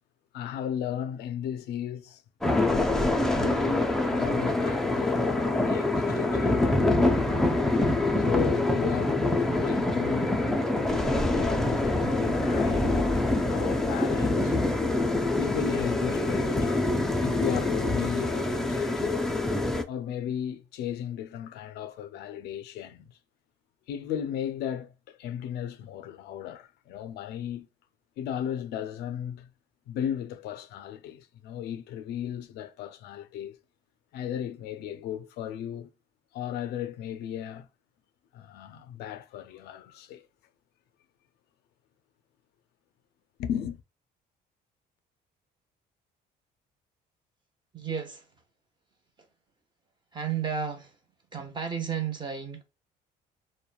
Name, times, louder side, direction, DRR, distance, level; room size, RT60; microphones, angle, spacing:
voice 1, 0.3-2.2 2.6-2.9 3.2-6.8 7.3-7.6 8.2-10.4 11.3-13.0 13.5-14.6 15.4-16.9 17.2-19.4 19.9-23.2 23.9-27.7 28.2-29.5 29.9-33.6 34.1-35.9 36.3-37.7 38.3-40.3 43.4-43.8, left 10 dB, 75° left, 0.4 m, -35 dB
sound 1, 2.4-19.8, left 2 dB, 5° left, 0.3 m, -25 dB
voice 2, 47.7-48.3 50.1-50.9 51.3-52.6, right 7 dB, 25° right, 0.8 m, -32 dB
3.0 x 2.1 x 2.2 m
cardioid pair, 110°, 17 cm